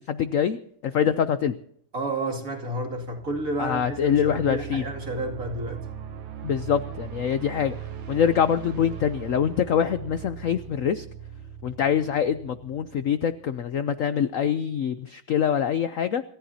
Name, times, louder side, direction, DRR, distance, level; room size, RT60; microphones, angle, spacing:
voice 1, 0.1-0.6 0.9-1.6 3.6-4.8 6.4-7.8 8.1-11.0 11.6-16.2, left 8 dB, 75° left, 0.7 m, -24 dB
voice 2, 1.9-5.9, right 2 dB, 40° right, 3.0 m, -31 dB
sound 1, 2.8-13.6, right 9 dB, 70° right, 2.0 m, -39 dB
27.5 x 14.5 x 2.8 m
omnidirectional pair, 2.2 m